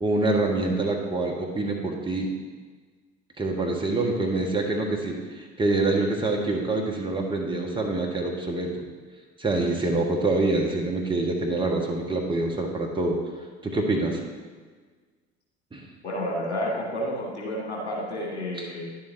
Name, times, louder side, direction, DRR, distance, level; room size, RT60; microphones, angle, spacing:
voice 1, 0.0-2.3 3.4-8.9 9.4-13.2 13.6-14.2 15.7-15.8 18.6-18.7, right 2 dB, 15° right, 0 dB, 1.2 m, -26 dB
voice 2, 16.0-18.8, equal, 80° left, -3 dB, 1.6 m, -30 dB
10.0 x 7.5 x 2.7 m, 1.5 s
figure-of-eight pair, 60°, 34 cm